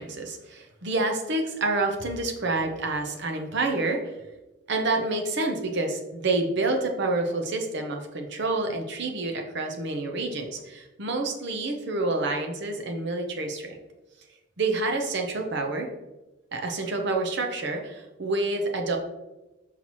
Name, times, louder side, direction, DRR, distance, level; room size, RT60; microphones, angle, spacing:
voice 1, 0.0-4.1 4.7-13.7 14.6-15.9 16.5-19.0, right 2 dB, 60° right, 3 dB, 0.8 m, -28 dB
5.8 x 5.7 x 3.0 m, 1.0 s
head